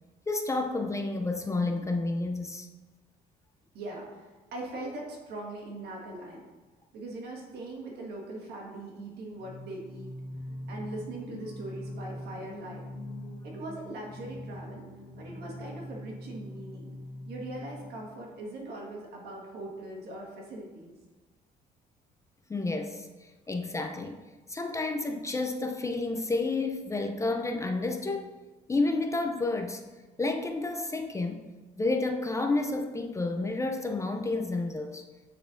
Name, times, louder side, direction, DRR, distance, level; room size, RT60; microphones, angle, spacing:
voice 1, 0.3-2.7 22.5-24.2 24.5-28.3 28.7-29.8 30.2-31.5 31.8-35.0, left 2 dB, 15° left, 5 dB, 0.4 m, -30 dB
voice 2, 3.7-6.4 6.9-10.1 10.7-12.9 13.4-14.9 15.2-16.9 17.3-20.9, right 2 dB, 75° right, -1 dB, 1.6 m, -41 dB
Singing, 9.3-18.2, left 1 dB, 80° left, 1.9 m, -42 dB
9.3 x 4.2 x 2.6 m, 1.2 s
cardioid pair, 110°, 17 cm